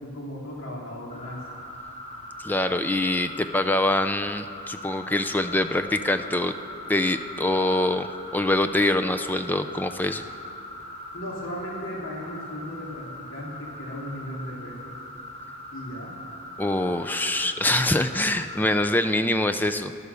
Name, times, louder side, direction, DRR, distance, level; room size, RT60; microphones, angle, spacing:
voice 1, 0.0-1.4 11.1-14.9 15.7-16.1, equal, 60° left, -3 dB, 2.7 m, -36 dB
sound 1, 1.1-18.6, left 1 dB, 30° left, 2.4 m, -41 dB
voice 2, 2.4-6.5 6.9-8.1 8.3-10.2 16.6-19.9, left 1 dB, 10° left, 9 dB, 0.4 m, -24 dB
14.0 x 11.5 x 6.9 m, 2.5 s
head